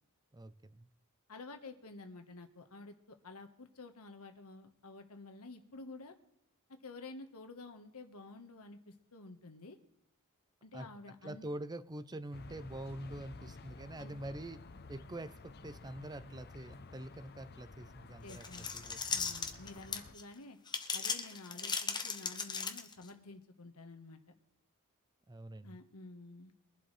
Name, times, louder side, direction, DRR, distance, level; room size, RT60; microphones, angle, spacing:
voice 1, 0.3-0.9 10.7-10.9 11.2-14.6 14.9-18.4 18.7-19.0 25.3-25.7, right 1 dB, 20° right, 13 dB, 0.6 m, -45 dB
voice 2, 1.3-6.1 6.7-9.8 10.6-11.5 14.0-14.1 18.2-18.7 19.1-20.6 20.9-24.2 25.6-26.5, left 3 dB, 80° left, 6 dB, 1.4 m, -51 dB
sound 1, 12.3-20.1, left 3 dB, 45° left, 0.7 m, -52 dB
sound 2, 18.3-20.2 20.7-23.1, left 5 dB, 20° left, 0.9 m, -37 dB
22.5 x 11.5 x 3.3 m, 0.81 s
head